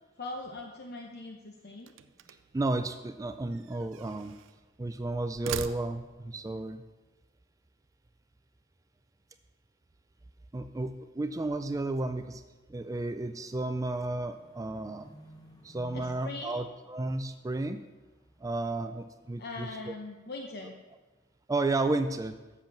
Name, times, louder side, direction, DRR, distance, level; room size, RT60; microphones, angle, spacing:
voice 1, 0.2-1.9 15.9-16.7 19.4-20.7, left 3 dB, 55° left, 2 dB, 0.8 m, -41 dB
sound 1, 1.8-2.6 3.5-4.6 5.2-6.3, right 8 dB, 85° right, 0.5 m, -41 dB
voice 2, 2.5-4.4 4.8-6.8 10.5-12.4 12.7-15.1 15.6-17.8 18.4-19.9 21.5-22.3, right 2 dB, 20° right, 9 dB, 0.3 m, -32 dB
sound 2, 13.3-20.4 20.7-21.3, equal, 20° left, 1.0 m, -56 dB
7.9 x 7.0 x 5.9 m, 1.2 s
head